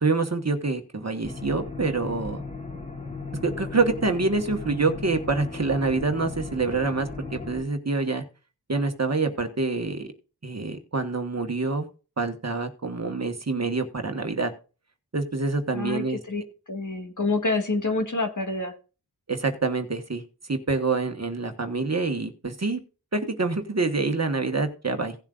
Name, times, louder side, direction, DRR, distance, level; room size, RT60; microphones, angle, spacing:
voice 1, 0.0-2.4 3.4-8.2 8.7-10.1 10.4-11.9 12.2-14.5 15.1-16.2 19.3-20.2 20.5-22.8 23.1-25.2, right 3 dB, 40° right, 6 dB, 1.4 m, -26 dB
sound 1, 1.2-7.6, left 3 dB, 15° left, 3.1 m, -36 dB
voice 2, 15.7-18.7, left 3 dB, 45° left, 4 dB, 1.8 m, -27 dB
17.0 x 7.4 x 2.5 m, 0.34 s
wide cardioid pair, 60°, 41 cm